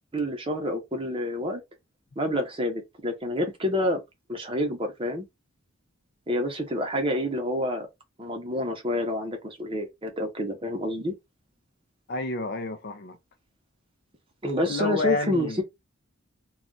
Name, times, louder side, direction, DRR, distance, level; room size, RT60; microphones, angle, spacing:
voice 1, 0.1-1.6 2.2-4.0 4.3-5.2 6.3-7.9 8.2-11.1 14.4-15.6, left 1 dB, 25° right, 0.7 m, -28 dB
voice 2, 12.1-13.2 14.6-15.6, left 2 dB, 50° left, 0.4 m, -30 dB
2.4 x 2.3 x 3.8 m
head